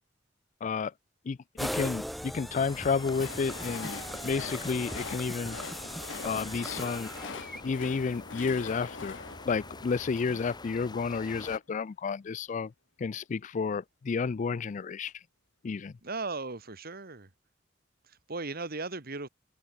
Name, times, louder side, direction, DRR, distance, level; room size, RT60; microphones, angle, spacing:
voice 1, 0.6-0.9 1.3-5.6 6.2-7.1 7.6-12.7 13.0-15.1 15.6-15.9, left 5 dB, 40° left, 0.4 m, -31 dB
sound 1, 1.6-7.6, equal, ahead, 1.1 m, -39 dB
sound 2, 2.5-11.6, left 3 dB, 25° left, 1.7 m, -46 dB
Train, 2.6-10.7, left 4 dB, 75° left, 1.6 m, -44 dB
voice 2, 16.0-17.3 18.0-19.3, right 3 dB, 55° right, 2.1 m, -37 dB
open air
head